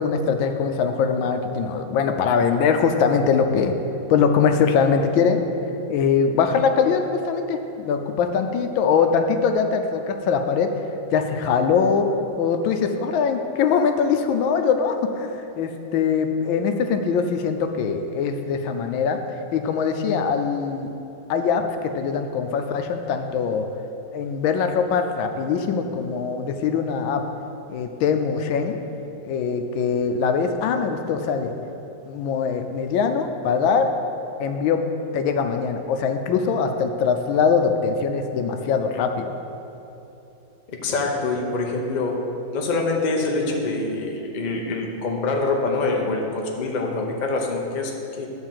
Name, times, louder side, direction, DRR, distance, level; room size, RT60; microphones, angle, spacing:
voice 1, 0.0-3.7 4.1-5.4 5.9-10.7 11.1-12.1 12.4-19.2 19.5-20.9 21.3-21.6 21.9-23.6 24.1-27.2 27.7-28.8 29.2-31.5 32.1-33.9 34.4-34.8 35.1-39.3, left 6 dB, 85° left, 6 dB, 1.4 m, -22 dB
voice 2, 40.7-42.2 42.5-48.3, left 3 dB, 45° left, 0 dB, 0.6 m, -25 dB
10.5 x 3.9 x 7.4 m, 2.9 s
omnidirectional pair, 2.1 m